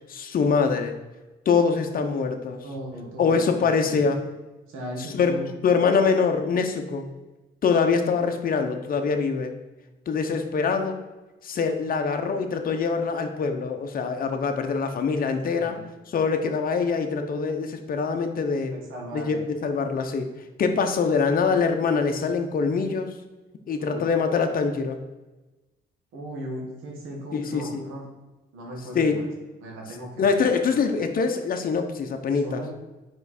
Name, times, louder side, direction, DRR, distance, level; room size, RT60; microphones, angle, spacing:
voice 1, 0.1-1.0 1.5-2.6 3.2-4.2 5.1-5.4 5.6-7.1 7.6-9.5 10.1-11.0 11.4-15.8 16.1-18.7 19.1-20.3 20.6-23.1 23.7-25.0 27.3-27.8 28.9-29.2 30.2-32.6, left 5 dB, 45° left, 5 dB, 0.7 m, -24 dB
voice 2, 2.6-4.1 4.7-5.5 15.5-15.8 18.7-19.4 23.8-24.0 26.1-28.0 28.5-29.3 29.6-30.3 30.7-30.9 32.3-32.7, right 1 dB, 90° right, -1 dB, 1.5 m, -37 dB
4.9 x 4.5 x 4.2 m, 1.1 s
cardioid pair, 90°, 20 cm